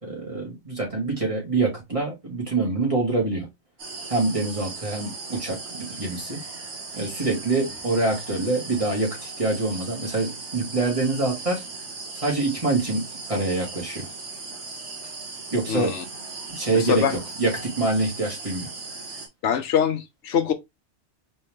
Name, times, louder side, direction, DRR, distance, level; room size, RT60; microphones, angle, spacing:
voice 1, 0.0-3.5 4.1-6.4 6.9-11.6 12.1-14.1 15.5-15.9 16.5-18.7, right 3 dB, 30° right, 2.3 m, -25 dB
sound 1, 3.8-19.3, right 3 dB, 70° right, 1.6 m, -38 dB
voice 2, 15.7-16.0 16.7-17.2 19.4-20.5, left 8 dB, 80° left, 1.1 m, -23 dB
4.4 x 3.1 x 3.5 m
omnidirectional pair, 1.2 m